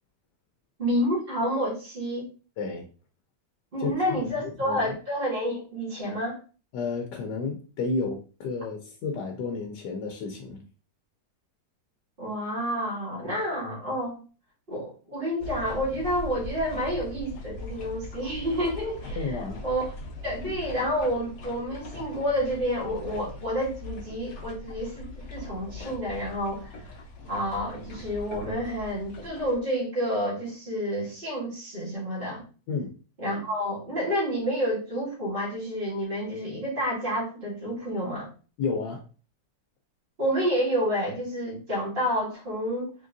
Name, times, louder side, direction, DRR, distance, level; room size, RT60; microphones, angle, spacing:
voice 1, 0.8-2.3 3.7-6.4 12.2-14.2 14.7-19.3 19.6-19.9 20.2-26.7 27.3-32.4 33.2-38.3 40.2-42.9, equal, 30° right, 2.0 m, -29 dB
voice 2, 3.8-4.2 4.4-4.8 6.7-10.6 19.1-19.6 32.7-32.9 38.6-39.0, left 4 dB, 85° left, 1.3 m, -31 dB
sound 1, 15.4-29.6, left 2 dB, 50° left, 0.9 m, -40 dB
3.8 x 3.7 x 2.6 m
omnidirectional pair, 1.8 m